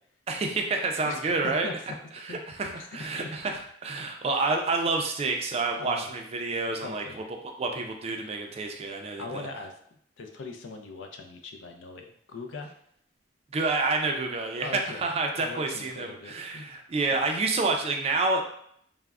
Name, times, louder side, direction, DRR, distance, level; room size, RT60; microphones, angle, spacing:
voice 1, 0.3-1.7 2.2-3.5 3.8-7.0 7.4-9.5 13.5-18.4, right 3 dB, 35° right, 3 dB, 0.3 m, -28 dB
voice 2, 1.4-1.7 2.3-2.4 2.8-3.4 5.7-6.1 6.8-7.3 9.2-9.7 10.2-12.7 14.6-15.1 15.4-16.7 17.1-17.2, left 3 dB, 85° left, 4 dB, 0.4 m, -40 dB
3.4 x 2.0 x 2.3 m, 0.66 s
head